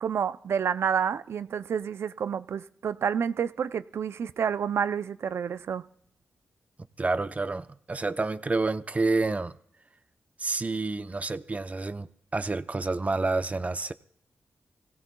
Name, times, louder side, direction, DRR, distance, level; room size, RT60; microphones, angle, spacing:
voice 1, 0.0-5.8, right 7 dB, 75° right, 0.5 m, -29 dB
voice 2, 7.0-9.6 10.4-13.9, right 3 dB, 35° right, 0.7 m, -29 dB
25.5 x 16.5 x 2.3 m
cardioid pair, 50°, 4 cm